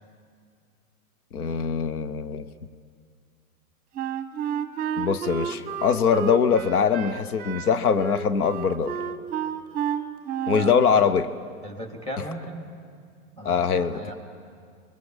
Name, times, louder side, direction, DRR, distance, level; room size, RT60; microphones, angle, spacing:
voice 1, 1.3-2.4 5.0-8.9 10.5-11.3 13.4-14.1, left 6 dB, 85° left, 13 dB, 0.9 m, -22 dB
Wind instrument woodwind instrument, 4.0-10.8, right 7 dB, 20° right, 1.0 m, -31 dB
voice 2, 10.5-11.1 11.6-12.6 13.4-14.1, right 1 dB, 15° left, 2 dB, 3.3 m, -36 dB
29.5 x 22.5 x 5.0 m, 2.2 s
hypercardioid pair, 120°, 43 cm